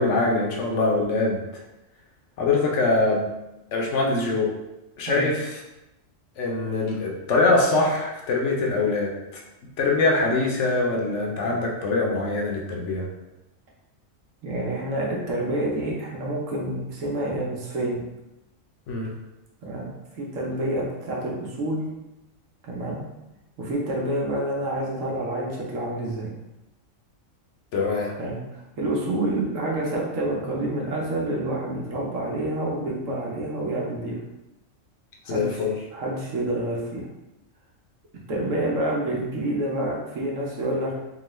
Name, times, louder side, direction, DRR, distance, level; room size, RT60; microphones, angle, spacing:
voice 1, 0.0-1.4 2.4-3.3 3.7-4.5 5.0-5.5 6.4-9.4 9.8-13.1 18.9-19.1 27.7-28.2 35.3-35.7, left 3 dB, 65° left, -1 dB, 0.9 m, -23 dB
voice 2, 14.4-18.0 19.6-19.9 20.2-21.8 22.6-23.0 23.6-26.3 28.2-34.2 35.3-35.6 35.9-37.1 38.3-40.9, right 1 dB, 75° right, -2 dB, 1.2 m, -28 dB
3.6 x 2.4 x 3.0 m, 0.95 s
omnidirectional pair, 1.4 m